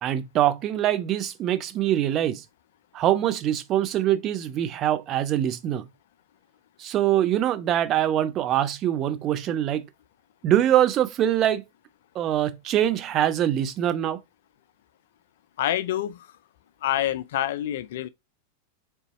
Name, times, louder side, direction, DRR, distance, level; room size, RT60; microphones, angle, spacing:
voice 1, 0.0-2.4 2.9-5.9 6.8-9.9 10.4-11.6 12.1-14.2, right 11 dB, 35° right, 0.4 m, -23 dB
voice 2, 15.6-16.3 16.8-18.1, left 12 dB, 55° left, 0.3 m, -27 dB
4.0 x 3.4 x 2.9 m
figure-of-eight pair, 90°, 0 cm